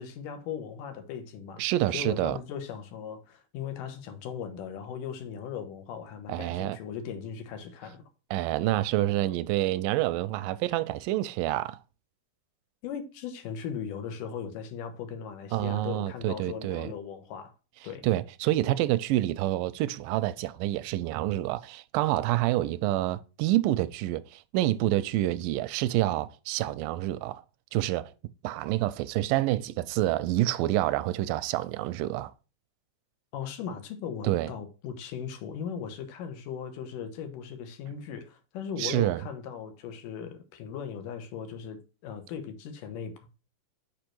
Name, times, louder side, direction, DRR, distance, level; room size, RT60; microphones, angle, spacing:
voice 1, 0.0-1.6 1.9-8.0 12.8-17.5 17.8-18.1 33.3-43.3, left 7 dB, 80° left, 2.6 m, -38 dB
voice 2, 1.6-2.4 6.3-6.8 8.3-11.8 15.5-16.9 18.0-27.4 27.7-28.1 28.4-32.3 34.2-34.5 38.8-39.2, right 15 dB, 90° right, 2.2 m, -27 dB
6.1 x 5.1 x 4.4 m
omnidirectional pair, 3.8 m